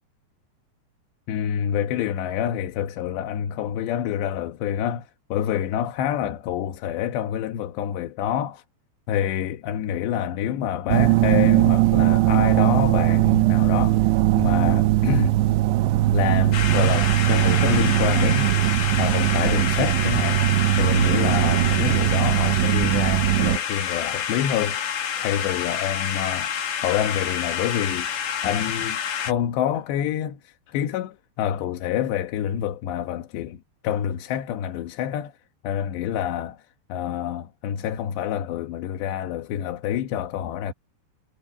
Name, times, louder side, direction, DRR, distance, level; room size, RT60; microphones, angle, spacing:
voice 1, 1.3-8.6 9.1-15.4 16.1-20.5 20.7-35.3 35.6-36.6 36.9-40.7, left 10 dB, 80° left, 3.6 m, -27 dB
sound 1, 10.9-23.6, right 16 dB, 85° right, 2.9 m, -20 dB
sound 2, 16.5-29.3, left 8 dB, 50° left, 2.6 m, -28 dB
omnidirectional pair, 5.0 m